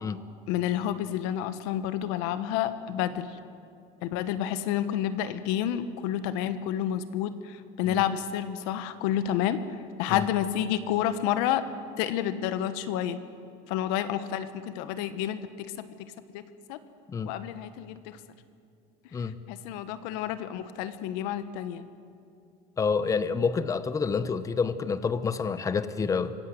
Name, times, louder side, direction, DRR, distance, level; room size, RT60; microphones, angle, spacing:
voice 1, 0.5-3.4 4.0-9.7 10.0-11.6 12.0-13.2 13.7-15.9 16.3-16.4 16.7-16.8 17.2-18.2 19.5-21.9, left 11 dB, 85° left, 11 dB, 1.3 m, -29 dB
voice 2, 22.8-26.4, left 5 dB, 20° left, 13 dB, 0.9 m, -28 dB
25.5 x 16.0 x 7.8 m, 2.4 s
cardioid pair, 140°, 15 cm